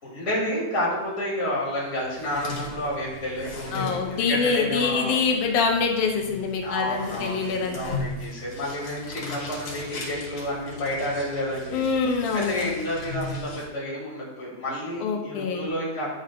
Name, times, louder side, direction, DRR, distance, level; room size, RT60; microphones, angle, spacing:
voice 1, 0.0-5.2 6.6-11.8 12.3-16.1, left 1 dB, 25° left, -7 dB, 2.5 m, -30 dB
sound 1, 1.9-13.6, left 2 dB, 70° left, 2.9 m, -38 dB
voice 2, 3.7-8.0 11.7-12.7 15.0-15.7, left 5 dB, 90° left, 1 dB, 2.3 m, -25 dB
11.5 x 4.9 x 2.3 m, 1.1 s
omnidirectional pair, 3.4 m